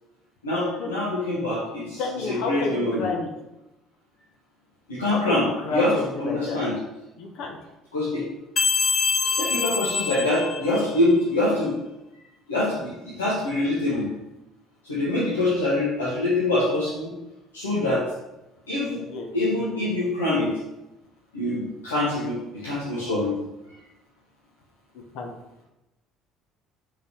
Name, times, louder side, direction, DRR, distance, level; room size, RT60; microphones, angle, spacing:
voice 1, 0.4-3.1 4.9-6.7 7.9-8.2 9.4-11.7 12.5-14.1 14.8-17.1 17.5-18.0 18.7-19.0 19.3-20.5 21.3-23.3, left 2 dB, 85° left, -8 dB, 1.4 m, -25 dB
voice 2, 2.0-3.3 5.1-5.3 5.6-6.6 7.2-7.6 19.1-19.3 25.1-25.3, left 3 dB, 60° left, 2 dB, 1.0 m, -30 dB
sound 1, 8.6-11.1, left 5 dB, 40° left, 0.5 m, -25 dB
5.3 x 4.1 x 4.6 m, 0.95 s
figure-of-eight pair, 55°, 0 cm